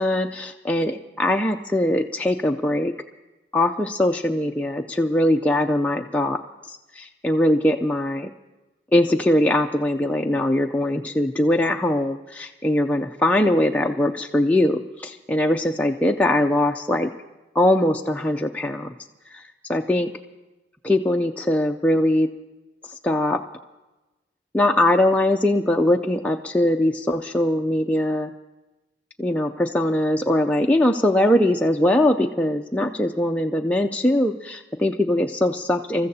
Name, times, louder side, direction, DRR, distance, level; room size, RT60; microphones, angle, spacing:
voice 1, 0.0-2.9 3.5-6.4 6.7-8.3 8.9-17.1 17.5-18.9 19.3-19.4 19.7-20.1 20.8-22.3 23.0-23.4 24.5-28.3 29.2-36.1, left 1 dB, 10° left, 2 dB, 0.4 m, -21 dB
27.5 x 14.0 x 2.8 m, 1.1 s
head